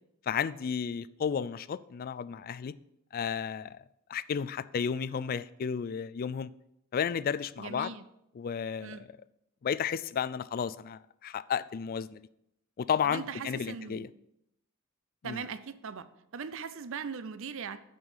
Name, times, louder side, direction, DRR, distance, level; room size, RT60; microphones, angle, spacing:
voice 1, 0.3-2.8 3.1-3.8 4.1-6.5 6.9-7.9 8.3-9.0 9.6-12.2 12.8-14.1 15.2-15.4, left 7 dB, 40° left, 0.3 m, -32 dB
voice 2, 7.6-8.1 8.8-9.1 13.0-14.1 15.2-16.1 16.3-17.8, right 6 dB, 60° right, 0.5 m, -39 dB
8.7 x 5.5 x 5.5 m
head